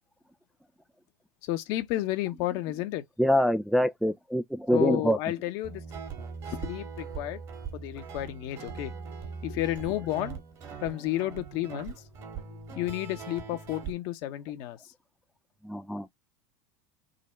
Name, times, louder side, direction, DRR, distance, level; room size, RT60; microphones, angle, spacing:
voice 1, 1.5-3.0 4.7-5.8 6.5-7.4 7.7-8.9 9.4-10.4 10.8-11.9 12.7-14.8, left 15 dB, 60° left, 1.0 m, -31 dB
voice 2, 3.2-5.2 12.8-12.9 15.6-16.1, equal, ahead, 0.4 m, -25 dB
Guitar, 5.6-13.9, right 6 dB, 45° right, 1.9 m, -41 dB
3.9 x 2.8 x 4.4 m
hypercardioid pair, 100°, 8 cm